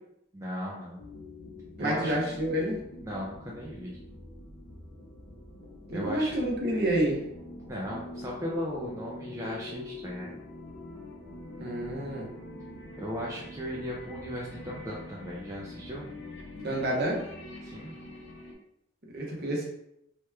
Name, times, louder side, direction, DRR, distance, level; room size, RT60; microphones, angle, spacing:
voice 1, 0.3-1.0 1.8-2.2 3.0-4.0 5.9-6.3 7.7-10.4 13.0-16.1 17.6-17.9, equal, 15° right, -5 dB, 0.3 m, -36 dB
sound 1, 1.0-18.5, left 1 dB, 60° left, 0.5 m, -45 dB
voice 2, 1.8-2.8 5.9-7.2 11.6-12.3 16.6-17.2 19.1-19.6, right 1 dB, 50° right, -3 dB, 0.8 m, -29 dB
2.9 x 2.3 x 3.2 m, 0.79 s
head